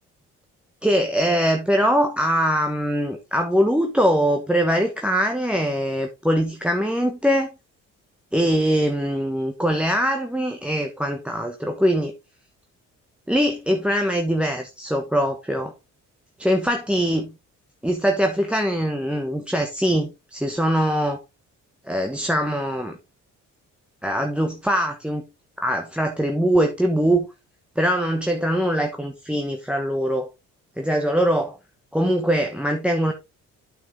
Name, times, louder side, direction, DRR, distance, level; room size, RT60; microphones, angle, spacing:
voice 1, 0.8-7.5 8.3-12.1 13.3-15.7 16.4-17.3 17.8-21.2 21.9-23.0 24.0-25.3 25.6-27.3 27.8-30.3 30.8-31.6 31.9-33.1, equal, 5° right, 1.2 m, -22 dB
8.4 x 6.3 x 3.6 m
cardioid pair, 90°, 30 cm